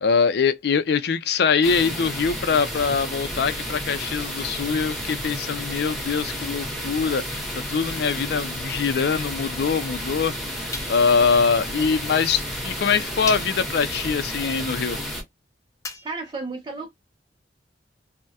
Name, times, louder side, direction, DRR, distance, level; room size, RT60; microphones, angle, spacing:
voice 1, 0.0-10.6 10.9-15.0, left 5 dB, 65° left, 0.4 m, -23 dB
sound 1, 1.6-15.2, equal, ahead, 1.0 m, -32 dB
sound 2, 10.7-11.3 12.4-12.5 13.3-13.8 15.8-16.4, left 3 dB, 20° left, 0.6 m, -36 dB
voice 2, 16.0-16.9, right 3 dB, 25° right, 0.5 m, -32 dB
3.4 x 2.1 x 2.7 m
head